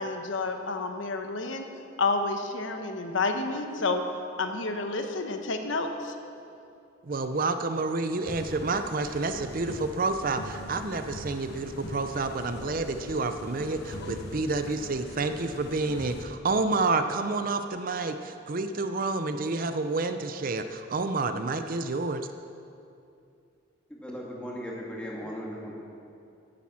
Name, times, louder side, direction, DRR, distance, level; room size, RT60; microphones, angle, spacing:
voice 1, 0.0-1.7 2.0-4.0 4.4-6.1, left 3 dB, 75° left, 5 dB, 1.1 m, -29 dB
voice 2, 7.0-22.3, right 3 dB, 45° right, 9 dB, 0.5 m, -29 dB
sound 1, 8.2-16.2, left 1 dB, 55° left, 1.3 m, -42 dB
voice 3, 23.9-25.7, equal, 5° left, -4 dB, 2.4 m, -37 dB
14.5 x 10.5 x 5.9 m, 2.5 s
head